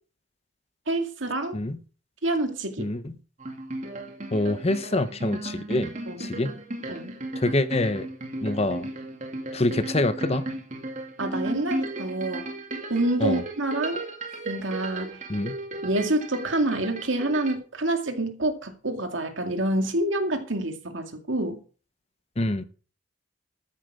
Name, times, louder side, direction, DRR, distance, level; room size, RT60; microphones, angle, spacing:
voice 1, 0.9-1.6 2.2-2.9 6.1-6.3 6.9-7.1 11.2-12.5 12.9-14.0 14.5-15.2 15.8-21.6, right 1 dB, 85° right, 2.2 m, -27 dB
voice 2, 2.8-3.1 4.3-5.9 6.2-6.6 7.3-8.1 8.4-8.9 9.5-10.5 13.2-13.4 15.3-15.5 22.4-22.6, left 2 dB, 35° left, 0.9 m, -26 dB
sound 1, 3.4-17.6, right 2 dB, 40° right, 2.2 m, -35 dB
13.5 x 9.2 x 4.9 m
head